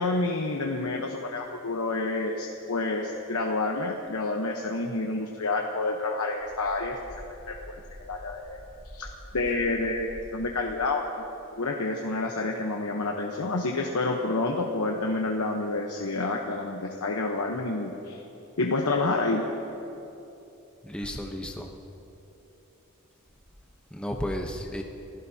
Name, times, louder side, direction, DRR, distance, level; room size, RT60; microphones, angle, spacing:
voice 1, 0.0-7.0 7.5-7.8 8.1-8.6 8.9-9.1 9.3-11.0 11.6-18.2 18.6-19.4, left 3 dB, 80° left, 1 dB, 1.0 m, -28 dB
voice 2, 20.8-21.7 23.9-24.8, equal, 5° left, 1 dB, 0.9 m, -33 dB
29.0 x 16.5 x 2.8 m, 2.9 s
head